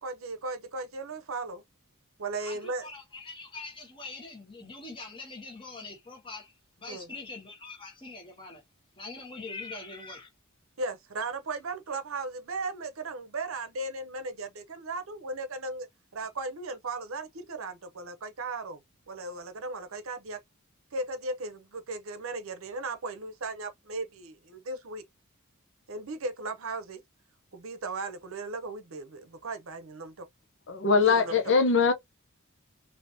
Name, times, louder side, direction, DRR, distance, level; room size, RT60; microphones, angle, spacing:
voice 1, 0.0-1.6 2.2-2.9 6.9-7.1 10.8-15.9 16.1-18.8 19.1-20.4 20.9-25.0 25.9-27.0 27.5-30.3 31.0-31.5, right 3 dB, 75° right, 0.7 m, -36 dB
voice 2, 2.4-6.5 6.8-8.6 9.0-10.3, left 3 dB, 25° left, 1.5 m, -43 dB
voice 3, 30.7-31.9, left 4 dB, 60° left, 0.7 m, -22 dB
3.4 x 2.8 x 2.7 m
head